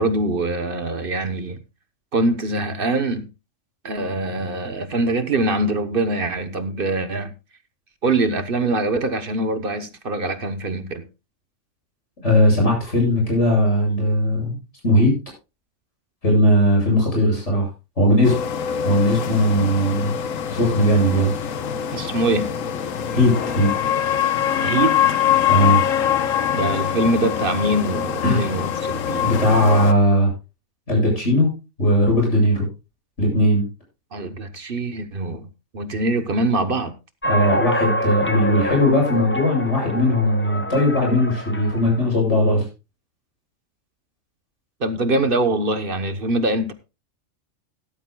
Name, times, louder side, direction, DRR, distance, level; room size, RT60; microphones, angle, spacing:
voice 1, 0.0-1.6 2.1-3.3 3.8-7.3 8.0-11.1 21.9-22.5 24.6-25.0 26.5-29.3 34.1-35.5 35.7-36.9 44.8-46.7, right 2 dB, 45° right, 1.1 m, -23 dB
voice 2, 12.2-14.6 14.8-15.2 16.2-17.7 18.0-18.4 18.8-20.1 20.5-21.3 23.1-23.7 25.5-25.8 28.2-28.4 29.2-30.3 30.9-31.5 31.8-32.7 33.2-33.6 37.2-42.6, equal, 60° left, 8.4 m, -18 dB
sound 1, 18.2-29.9, left 9 dB, 85° left, 1.3 m, -23 dB
sound 2, 37.2-42.0, equal, 10° left, 0.7 m, -26 dB
17.0 x 12.5 x 2.3 m
omnidirectional pair, 1.4 m